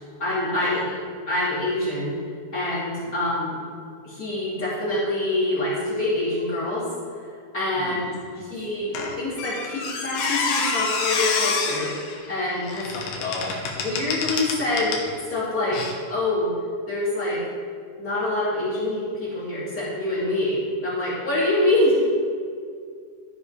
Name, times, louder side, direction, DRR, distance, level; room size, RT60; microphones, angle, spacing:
voice 1, 0.2-0.8 1.3-2.1 2.5-3.6 4.0-6.9 7.2-12.9 13.5-13.6 13.8-15.0 15.3-16.5 16.9-17.4 18.0-22.0, left 1 dB, 25° left, -10 dB, 2.6 m, -25 dB
voice 2, 7.8-8.4 12.9-13.6, left 3 dB, 90° left, -8 dB, 4.0 m, -35 dB
Squeak, 8.9-15.1 15.7-15.9, left 4 dB, 70° left, 2.4 m, -27 dB
14.5 x 4.9 x 5.1 m, 2.2 s
omnidirectional pair, 4.9 m